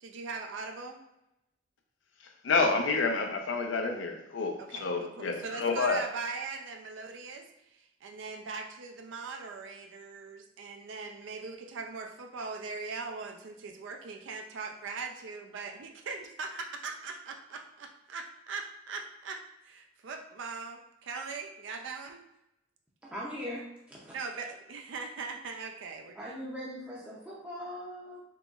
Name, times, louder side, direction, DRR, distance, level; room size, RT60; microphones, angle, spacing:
voice 1, 0.0-1.0 4.6-22.2 24.1-26.6, right 4 dB, 75° right, 0.4 m, -40 dB
voice 2, 2.4-6.0, left 4 dB, 80° left, 0.5 m, -29 dB
voice 3, 23.0-24.5 26.2-28.2, equal, 5° right, 0.5 m, -41 dB
3.8 x 2.9 x 2.3 m
head